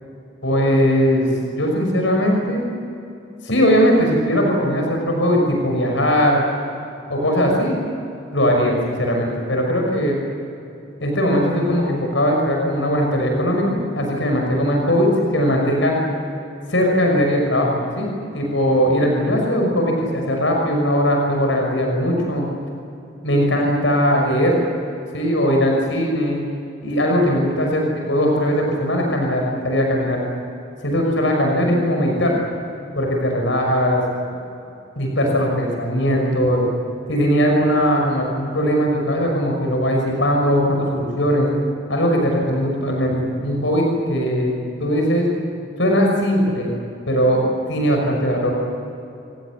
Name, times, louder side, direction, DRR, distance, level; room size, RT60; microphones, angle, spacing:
voice 1, 0.4-2.6 3.4-6.4 7.1-7.8 8.3-10.2 11.0-16.0 16.7-18.1 18.3-22.5 23.2-24.6 25.1-26.4 26.8-27.8 28.1-30.2 30.8-32.3 33.0-34.0 35.0-36.6 37.1-41.5 41.9-44.5 44.8-45.2 45.8-46.7 47.1-47.4 47.7-48.5, equal, 70° left, 1 dB, 6.0 m, -19 dB
29.0 x 17.0 x 9.8 m, 2.8 s
head